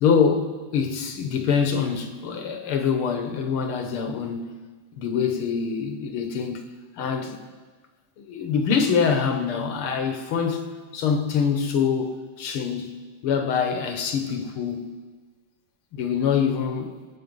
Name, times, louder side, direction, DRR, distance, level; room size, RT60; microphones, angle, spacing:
voice 1, 0.0-4.5 5.0-6.6 7.0-7.4 8.2-10.7 10.9-13.0 13.2-14.9 15.9-16.9, left 6 dB, 85° left, 2.2 m, -24 dB
24.0 x 8.9 x 5.5 m
omnidirectional pair, 2.3 m